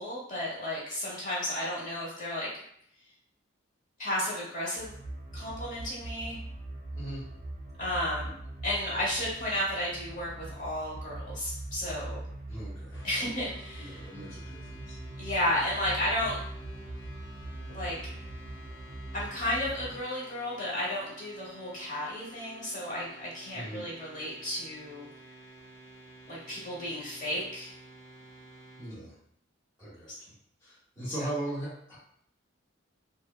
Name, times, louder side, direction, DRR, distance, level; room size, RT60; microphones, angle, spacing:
voice 1, 0.0-2.5 4.0-4.9 5.3-6.4 7.8-8.3 8.6-12.2 13.0-14.1 15.2-16.4 17.7-18.0 19.1-25.1 26.3-27.7 31.1-31.2, left 1 dB, 40° left, -6 dB, 0.9 m, -33 dB
sound 1, 4.8-20.0, right 1 dB, 45° right, 0.5 m, -42 dB
voice 2, 12.5-13.1 13.8-14.9 23.5-23.8 28.8-29.1 29.8-30.3 30.6-32.0, right 1 dB, 15° left, -10 dB, 0.7 m, -39 dB
sound 2, 12.9-28.9, right 1 dB, 70° left, 0.7 m, -51 dB
2.8 x 2.1 x 2.3 m, 0.68 s
head